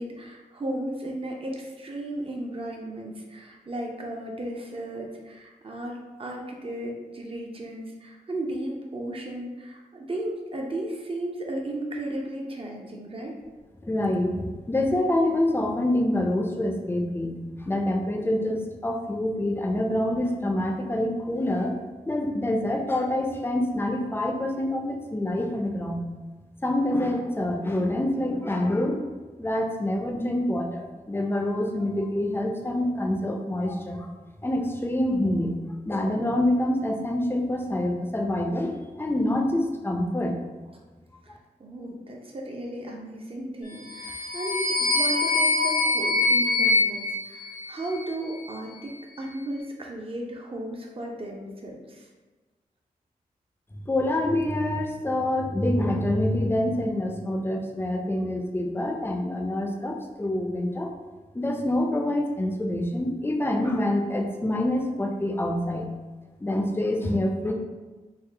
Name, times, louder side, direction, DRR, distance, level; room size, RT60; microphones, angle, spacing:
voice 1, 0.0-13.3 41.2-52.1, right 1 dB, 40° right, 0 dB, 0.7 m, -35 dB
voice 2, 13.8-21.8 22.1-26.1 26.6-29.0 29.4-34.1 34.4-35.6 35.9-40.4 53.9-60.9 61.3-65.9 66.4-67.5, left 1 dB, 15° left, 2 dB, 0.6 m, -26 dB
sound 1, 43.8-48.1, left 2 dB, 85° left, 1.0 m, -24 dB
3.6 x 2.1 x 3.3 m, 1.2 s
cardioid pair, 45°, 15 cm